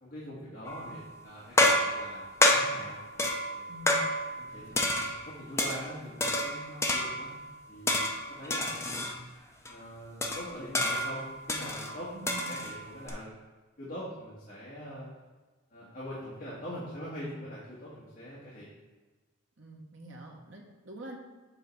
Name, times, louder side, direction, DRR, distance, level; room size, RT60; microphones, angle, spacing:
voice 1, 0.0-3.0 3.5-3.7 4.4-7.3 7.7-8.0 8.3-9.2 9.7-13.3 13.8-15.1 15.7-18.7, equal, 40° left, -9 dB, 1.6 m, -43 dB
sound 1, 0.7-1.0 1.6-4.5 4.8-5.9 6.2-7.4 7.9-9.2 9.7-9.8 10.2-13.1, left 1 dB, 15° left, 0.6 m, -29 dB
voice 2, 3.7-4.1 4.5-4.9 6.7-7.0 12.1-12.6 19.6-21.2, right 1 dB, 60° right, 0 dB, 1.3 m, -46 dB
7.7 x 3.7 x 5.4 m, 1.3 s
head